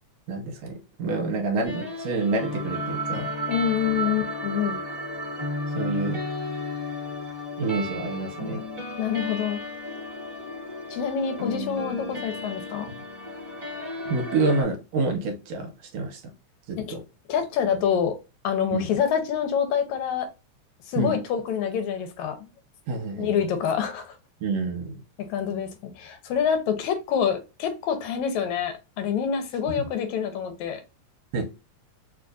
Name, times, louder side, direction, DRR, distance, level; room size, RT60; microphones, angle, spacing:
voice 1, 0.3-3.3 5.8-6.2 7.6-8.6 14.1-16.2 16.7-17.0 18.7-18.9 21.0-21.2 22.9-23.4 24.4-25.0 31.3-31.4, right 3 dB, 70° right, 1.9 m, -28 dB
sound 1, 1.6-14.6, left 1 dB, 25° right, 0.7 m, -33 dB
voice 2, 3.5-4.8 9.0-9.6 10.9-12.9 16.8-17.0 17.3-18.2 18.4-20.3 20.9-22.5 23.2-24.2 25.2-30.8, left 8 dB, 80° left, 2.1 m, -26 dB
4.5 x 2.5 x 2.4 m
omnidirectional pair, 3.4 m